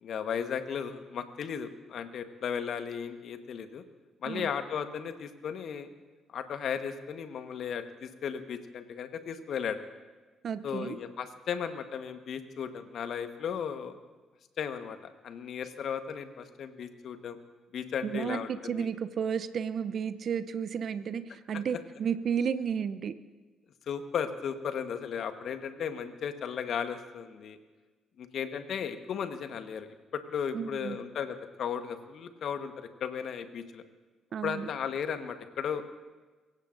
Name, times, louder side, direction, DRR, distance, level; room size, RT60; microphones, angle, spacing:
voice 1, 0.0-3.8 4.2-5.9 6.3-9.8 10.6-14.0 14.6-17.4 17.7-18.9 23.9-27.6 28.2-33.8 34.4-35.9, left 7 dB, 60° left, 8 dB, 1.3 m, -35 dB
voice 2, 10.4-11.0 18.0-23.1 30.5-31.0 34.3-34.7, right 7 dB, 55° right, 12 dB, 0.6 m, -32 dB
23.5 x 16.5 x 2.6 m, 1.3 s
hypercardioid pair, 45°, 0 cm